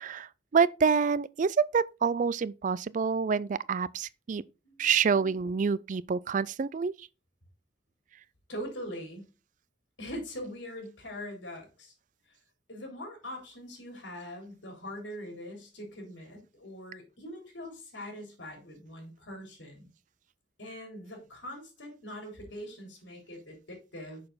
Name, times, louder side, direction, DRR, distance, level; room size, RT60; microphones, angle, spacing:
voice 1, 0.0-4.4 4.8-6.9, right 6 dB, 45° right, 0.4 m, -27 dB
voice 2, 8.5-9.2 10.0-11.9 12.7-19.9 20.6-24.2, equal, 85° left, 3.7 m, -42 dB
6.6 x 6.5 x 4.0 m
head